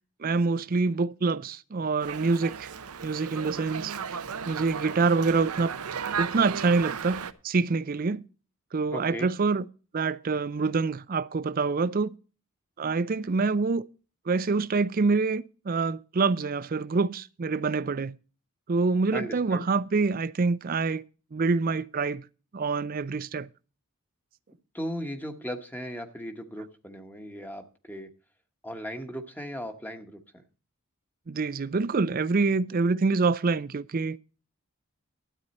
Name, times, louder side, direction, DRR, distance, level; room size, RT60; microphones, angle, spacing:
voice 1, 0.2-2.7 3.0-5.7 6.2-8.3 8.7-9.7 9.9-12.1 12.8-13.8 14.3-18.1 18.7-21.0 21.3-22.2 22.5-23.5 31.3-34.2, right 4 dB, 40° right, 0.4 m, -26 dB
Dog, 2.0-7.3, right 6 dB, 80° right, 0.7 m, -35 dB
voice 2, 8.9-9.3 19.1-19.6 24.7-28.1 28.6-30.2, equal, 10° left, 1.2 m, -37 dB
12.5 x 9.1 x 4.2 m
head